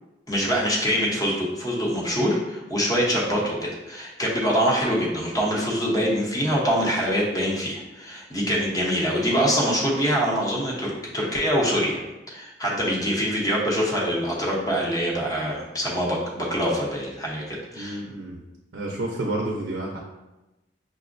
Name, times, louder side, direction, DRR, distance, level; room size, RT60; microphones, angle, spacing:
voice 1, 0.3-12.0 12.3-18.0, equal, 20° left, -4 dB, 0.8 m, -24 dB
voice 2, 17.8-18.4 18.7-20.0, right 1 dB, 65° right, -1 dB, 0.5 m, -30 dB
5.8 x 2.1 x 2.5 m, 1.0 s
head